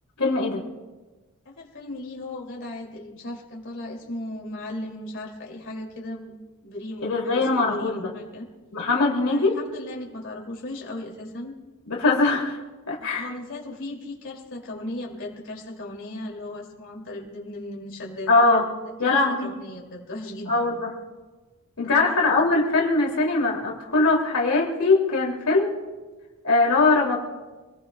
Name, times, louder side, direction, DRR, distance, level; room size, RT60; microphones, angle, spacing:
voice 1, 0.2-0.7 7.0-8.1 8.7-9.6 11.9-12.6 12.9-13.3 18.3-18.7 19.0-19.5 20.5-20.9 21.8-25.8 26.4-27.2, left 3 dB, 80° left, -1 dB, 2.8 m, -21 dB
voice 2, 1.4-6.4 6.6-8.4 9.3-11.5 13.0-18.5 19.0-20.7 21.8-22.4, left 1 dB, 55° left, -2 dB, 2.7 m, -37 dB
27.0 x 19.5 x 2.3 m, 1.2 s
head